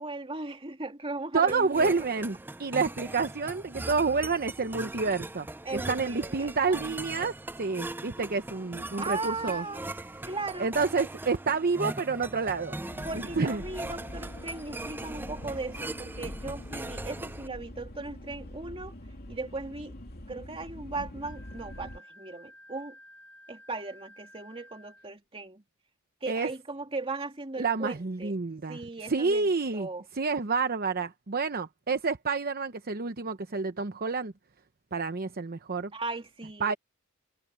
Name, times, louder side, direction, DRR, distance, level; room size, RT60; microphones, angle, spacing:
voice 1, 0.0-2.0 5.6-6.8 9.0-9.8 10.3-10.7 13.0-18.9 19.3-19.9 20.3-23.0 23.5-25.6 26.2-28.4 28.7-30.0 35.9-36.8, right 3 dB, 25° right, 2.6 m, -37 dB
voice 2, 1.3-5.5 5.7-9.6 10.6-12.8 13.1-13.6 26.3-26.5 27.6-28.8 29.1-29.9 30.1-34.3 34.9-35.9 36.6-36.7, right 4 dB, 45° right, 0.8 m, -29 dB
sound 1, 1.5-17.5, right 2 dB, 10° right, 0.4 m, -40 dB
sound 2, 12.9-22.0, left 1 dB, 45° left, 2.5 m, -44 dB
Wind instrument woodwind instrument, 21.2-25.1, left 1 dB, 5° left, 4.6 m, -53 dB
head